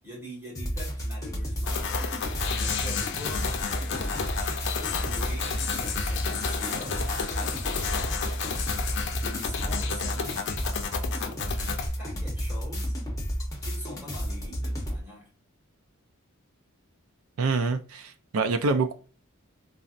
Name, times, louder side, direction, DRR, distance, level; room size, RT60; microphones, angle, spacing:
voice 1, 0.0-1.9 2.5-3.5 4.0-4.4 4.9-8.7 9.2-13.0 13.6-15.3, left 1 dB, 10° right, 1.4 m, -44 dB
sound 1, 0.5-15.0, equal, 15° left, 0.7 m, -32 dB
sound 2, 1.7-11.9, left 6 dB, 55° left, 0.5 m, -32 dB
voice 2, 17.4-18.9, right 3 dB, 75° right, 0.4 m, -26 dB
3.9 x 2.0 x 2.4 m
head